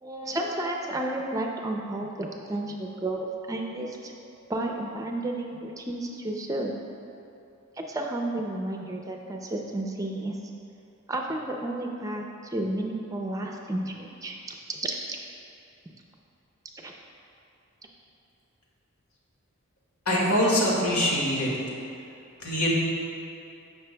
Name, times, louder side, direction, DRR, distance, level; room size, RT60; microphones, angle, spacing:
voice 1, 0.0-4.1 4.5-6.8 7.8-10.4 11.1-15.0 16.7-16.9, right 1 dB, 15° right, 1 dB, 0.5 m, -32 dB
voice 2, 20.1-21.5 22.4-22.7, equal, 90° left, -4 dB, 1.9 m, -23 dB
15.0 x 5.8 x 2.2 m, 2.8 s
head